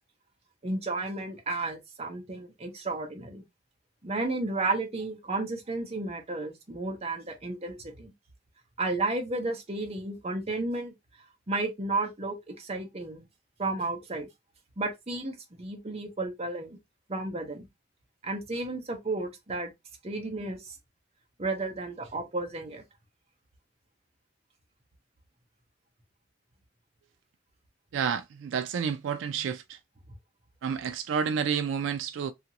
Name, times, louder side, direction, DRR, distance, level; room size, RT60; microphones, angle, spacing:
voice 1, 0.6-3.4 4.0-8.1 8.8-10.9 11.5-13.3 13.6-14.3 14.8-16.8 17.1-17.7 18.2-19.7 20.0-20.7 21.4-22.8, right 2 dB, 35° right, 0.7 m, -32 dB
voice 2, 27.9-29.8 30.6-32.3, right 7 dB, 75° right, 0.3 m, -30 dB
2.9 x 2.4 x 2.8 m
head